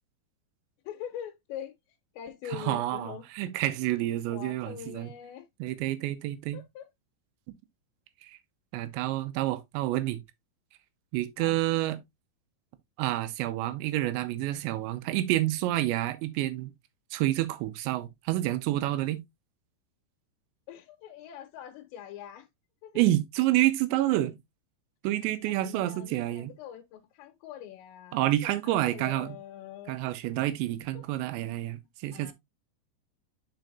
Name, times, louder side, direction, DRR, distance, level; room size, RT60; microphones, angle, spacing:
voice 1, 0.8-3.3 4.3-5.5 6.5-6.9 11.4-11.6 20.7-22.5 22.8-23.0 24.0-24.2 25.4-30.0 30.9-31.0 32.1-32.3, left 10 dB, 85° left, 3.0 m, -43 dB
voice 2, 2.5-5.1 5.6-6.6 8.2-8.4 8.7-10.2 11.1-12.0 13.0-16.7 17.1-19.2 23.0-24.3 25.0-26.5 28.1-29.4 29.9-32.3, right 15 dB, 90° right, 3.0 m, -28 dB
9.0 x 5.2 x 2.5 m
omnidirectional pair, 5.2 m